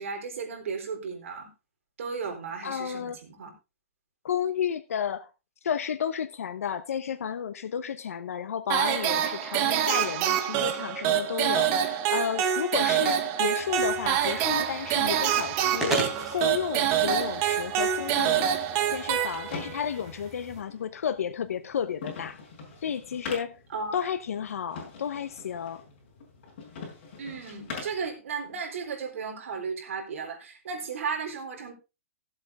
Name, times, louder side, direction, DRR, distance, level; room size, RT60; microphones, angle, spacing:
voice 1, 0.0-1.5 2.0-3.5 12.9-13.2 23.7-24.0 27.2-31.7, right 5 dB, 65° right, 4.0 m, -35 dB
voice 2, 2.6-3.2 4.2-5.3 5.6-16.0 16.3-18.5 18.9-22.4 22.8-23.6 23.9-25.8, left 8 dB, 80° left, 0.9 m, -32 dB
sound 1, 8.7-19.8, right 10 dB, 25° right, 1.0 m, -26 dB
sound 2, 13.6-20.6, equal, ahead, 3.9 m, -38 dB
sound 3, 18.9-28.1, left 4 dB, 45° left, 5.3 m, -44 dB
15.5 x 7.8 x 3.5 m
hypercardioid pair, 170°, 8 cm